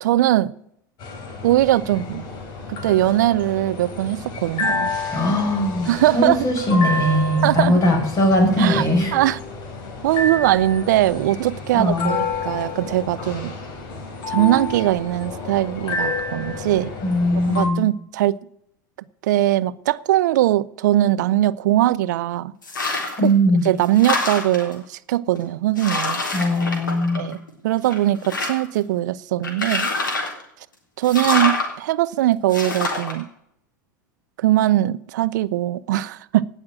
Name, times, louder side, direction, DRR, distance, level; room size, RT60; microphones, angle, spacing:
voice 1, 0.0-0.5 1.4-2.2 2.7-4.9 5.9-6.4 7.4-7.7 8.6-8.8 9.1-9.4 10.0-13.5 14.3-16.9 17.4-18.4 19.2-22.5 23.6-26.2 27.1-27.4 27.6-29.9 31.0-33.3 34.4-36.5, right 14 dB, 70° right, 0.5 m, -20 dB
sound 1, 1.0-17.7, left 3 dB, 45° left, 3.9 m, -30 dB
voice 2, 5.1-9.2 11.7-12.1 17.0-17.9 23.2-23.7 26.3-27.3, left 1 dB, 30° left, 7.3 m, -20 dB
sound 2, 22.6-23.3 23.7-24.7 25.4-25.5 25.8-27.5 27.9-28.8 29.4-30.4 31.0-31.7 32.5-33.1, left 3 dB, 85° left, 3.6 m, -25 dB
18.0 x 6.4 x 7.4 m
hypercardioid pair, 90°, 10 cm